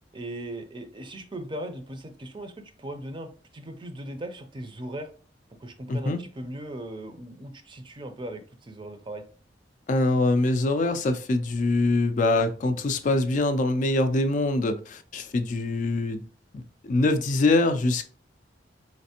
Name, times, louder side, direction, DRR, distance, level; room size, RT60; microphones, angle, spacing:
voice 1, 0.1-5.1 5.6-9.2, right 1 dB, 25° right, 7 dB, 0.5 m, -38 dB
voice 2, 5.9-6.2 9.9-16.2 16.5-18.1, left 2 dB, 45° left, 9 dB, 0.4 m, -24 dB
4.1 x 3.2 x 2.8 m, 0.39 s
head